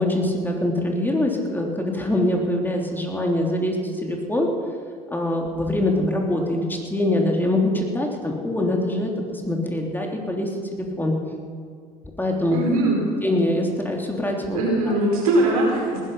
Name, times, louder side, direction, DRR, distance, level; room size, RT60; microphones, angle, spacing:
voice 1, 0.0-3.8 4.0-4.5 5.1-11.1 12.2-12.6 13.2-14.6, left 1 dB, 10° left, 0 dB, 3.2 m, -23 dB
voice 2, 12.5-13.0 14.5-16.0, right 1 dB, 80° right, -2 dB, 4.8 m, -21 dB
19.5 x 11.0 x 5.7 m, 2.1 s
hypercardioid pair, 60°, 19 cm